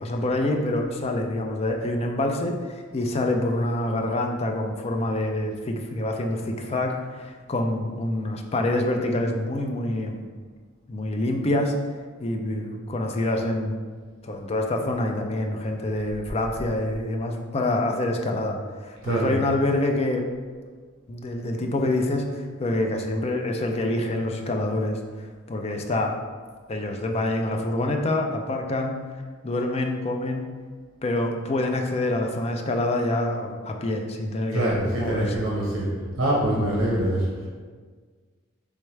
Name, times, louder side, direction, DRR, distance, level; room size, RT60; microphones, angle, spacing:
voice 1, 0.0-10.3 10.9-11.7 12.2-13.8 14.2-20.2 21.1-26.2 26.7-29.0 29.4-30.5 31.0-35.5 36.5-36.8, left 1 dB, 30° left, 3 dB, 0.4 m, -26 dB
voice 2, 34.5-35.9 36.2-37.5, right 1 dB, 80° right, -5 dB, 1.0 m, -24 dB
4.5 x 3.5 x 3.2 m, 1.5 s
head